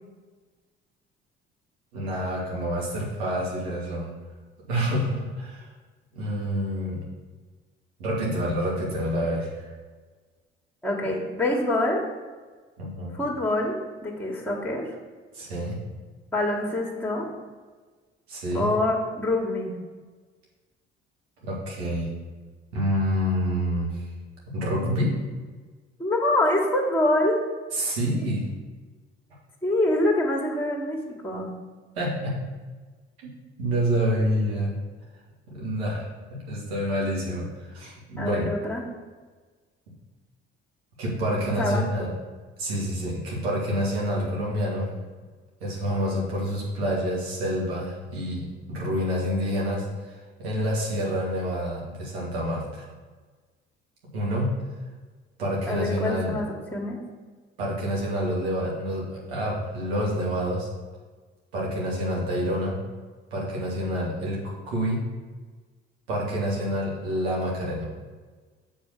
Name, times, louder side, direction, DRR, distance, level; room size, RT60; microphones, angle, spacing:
voice 1, 1.9-4.1 4.7-5.7 6.1-7.0 8.0-9.7 12.8-13.1 15.3-15.8 18.3-18.7 21.4-22.1 22.7-24.0 24.5-25.1 27.7-28.4 32.0-32.4 33.2-33.3 33.6-34.7 35.5-38.5 41.0-42.1 42.6-44.9 45.6-50.1 50.4-52.8 54.1-54.5 55.4-56.4 57.6-60.7 61.5-62.8 63.3-65.0 66.1-67.9, equal, 75° right, -4 dB, 2.5 m, -27 dB
voice 2, 10.8-12.1 13.1-13.7 14.0-14.9 16.3-17.3 18.5-19.7 26.0-27.4 29.6-31.6 38.2-38.8 41.5-42.1 55.7-57.0, left 1 dB, 5° left, -2 dB, 1.9 m, -25 dB
6.8 x 5.3 x 6.7 m, 1.4 s
figure-of-eight pair, 50°, 32 cm